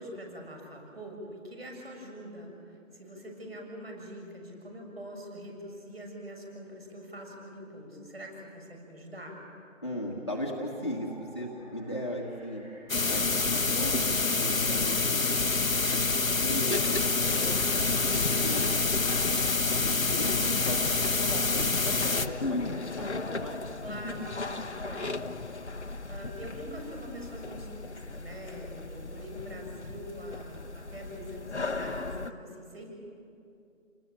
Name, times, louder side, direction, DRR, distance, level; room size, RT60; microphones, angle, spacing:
voice 1, 0.0-9.4 17.2-17.8 23.8-25.2 26.1-32.9, equal, 50° right, 2 dB, 6.7 m, -44 dB
voice 2, 9.8-12.6 13.1-15.2 15.5-17.5 18.1-23.6, equal, 20° left, -2 dB, 1.5 m, -38 dB
sound 1, 10.6-17.7, equal, 30° right, 3.0 m, -55 dB
sound 2, 12.9-22.3, left 3 dB, 85° left, 1.2 m, -27 dB
sound 3, 16.1-32.3, left 3 dB, 55° left, 1.0 m, -37 dB
29.5 x 19.5 x 8.7 m, 2.6 s
figure-of-eight pair, 175°, 40 cm